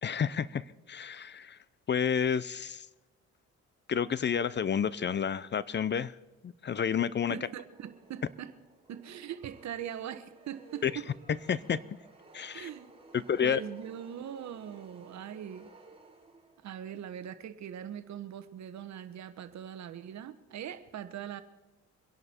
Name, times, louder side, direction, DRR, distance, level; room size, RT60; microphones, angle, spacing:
voice 1, 0.0-1.6 1.9-2.9 3.9-6.1 6.4-7.4 10.8-10.9 11.5-11.8 12.3-12.7 13.1-13.6, left 7 dB, 35° left, 18 dB, 0.5 m, -30 dB
voice 2, 7.3-8.5 8.9-11.1 12.5-12.9 13.4-15.7 16.6-21.4, right 9 dB, 65° right, 12 dB, 1.1 m, -41 dB
sound 1, 7.7-16.8, right 3 dB, 20° right, 2.6 m, -56 dB
25.0 x 11.0 x 4.4 m, 1.1 s
cardioid pair, 90°, 30 cm